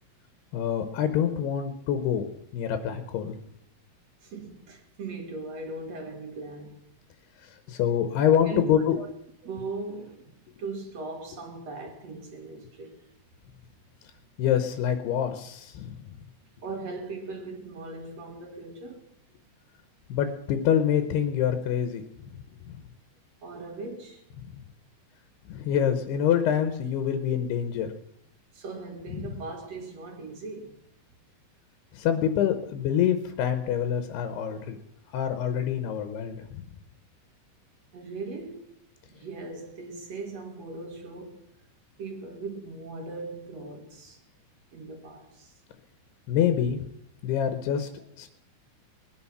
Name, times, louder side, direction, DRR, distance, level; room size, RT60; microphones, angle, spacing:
voice 1, 0.5-2.3 2.5-3.3 7.7-9.0 14.4-16.0 20.1-22.0 22.7-22.8 24.4-24.5 25.5-27.9 29.1-29.2 31.9-34.8 35.1-36.6 46.3-46.9 47.2-47.9 48.2-48.3, left 9 dB, 85° left, 3.0 m, -26 dB
voice 2, 4.2-6.9 8.2-8.6 8.9-9.1 9.4-10.3 10.6-13.0 16.6-19.1 23.4-24.2 28.5-30.8 37.9-38.8 39.1-41.5 42.0-44.2 44.7-45.5, right 3 dB, 55° right, 2.2 m, -39 dB
20.5 x 9.8 x 5.9 m
omnidirectional pair, 4.5 m